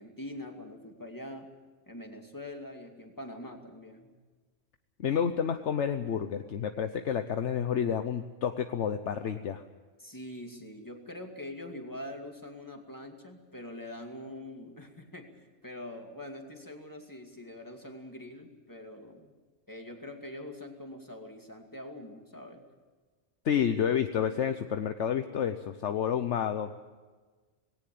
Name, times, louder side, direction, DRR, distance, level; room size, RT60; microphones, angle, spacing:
voice 1, 0.0-1.5 1.9-4.1 10.0-19.3 19.7-22.7, left 1 dB, 15° left, 3 dB, 2.3 m, -44 dB
voice 2, 5.0-9.6 23.4-26.7, left 8 dB, 70° left, 8 dB, 1.1 m, -30 dB
19.5 x 17.5 x 8.5 m, 1.4 s
omnidirectional pair, 1.3 m